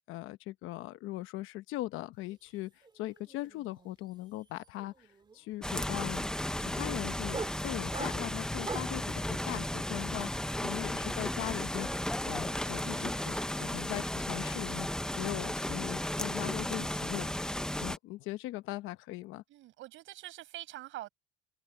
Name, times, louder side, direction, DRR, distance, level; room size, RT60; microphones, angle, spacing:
voice 1, 0.1-5.1 5.3-6.3 6.6-19.4, left 17 dB, 70° left, 0.9 m, -40 dB
sound 1, 2.3-2.6 2.8-9.1, right 4 dB, 20° right, 2.0 m, -44 dB
sound 2, 5.6-18.0, left 1 dB, 5° left, 0.8 m, -34 dB
voice 2, 19.5-21.1, right 15 dB, 70° right, 6.6 m, -46 dB
cardioid pair, 125°, 21 cm